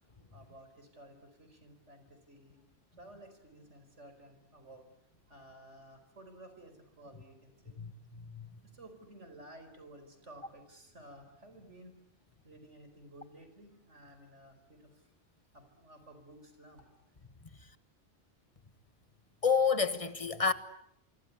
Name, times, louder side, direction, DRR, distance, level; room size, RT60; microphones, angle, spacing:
voice 1, 0.0-2.6 3.0-4.8 5.3-7.7 8.7-12.0 12.4-15.1 15.5-17.1, right 1 dB, 80° right, 5.0 m, -54 dB
voice 2, 7.8-8.5 19.4-20.5, left 5 dB, 30° left, 1.3 m, -29 dB
25.5 x 25.0 x 8.5 m
omnidirectional pair, 1.2 m